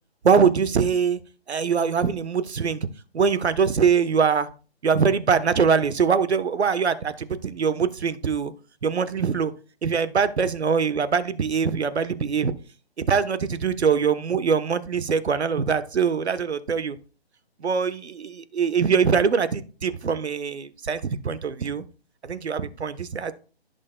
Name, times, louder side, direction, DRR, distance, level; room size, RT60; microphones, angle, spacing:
voice 1, 0.2-1.2 1.5-2.9 3.1-4.5 4.8-8.5 8.8-9.5 9.8-12.5 13.1-17.0 17.6-21.8 22.2-23.3, right 6 dB, 85° right, 1.1 m, -23 dB
15.5 x 6.4 x 2.2 m
hypercardioid pair, 180°, 32 cm